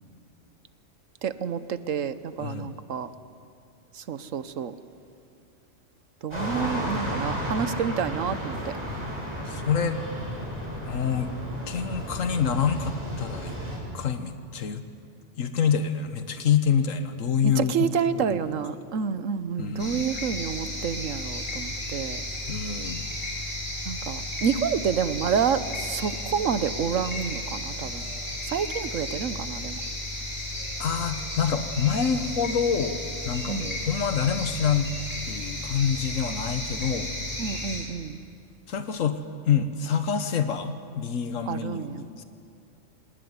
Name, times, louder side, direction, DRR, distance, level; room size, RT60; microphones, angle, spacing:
voice 1, 1.2-3.1 4.0-4.7 6.2-8.7 17.4-22.2 23.9-28.0 28.4-29.8 33.5-33.7 37.4-38.2 41.5-42.0, right 7 dB, 85° right, 13 dB, 1.3 m, -29 dB
voice 2, 2.4-2.7 9.4-10.0 10.8-11.3 11.7-13.5 13.9-14.8 15.4-18.6 19.6-20.1 22.5-23.0 30.8-34.9 35.2-37.1 38.7-42.2, left 7 dB, 85° left, 9 dB, 1.5 m, -27 dB
sound 1, 6.3-13.8, equal, 20° right, 7.9 m, -33 dB
sound 2, 19.8-37.8, left 1 dB, 40° left, 7.8 m, -34 dB
26.5 x 19.5 x 9.6 m, 2.5 s
omnidirectional pair, 1.3 m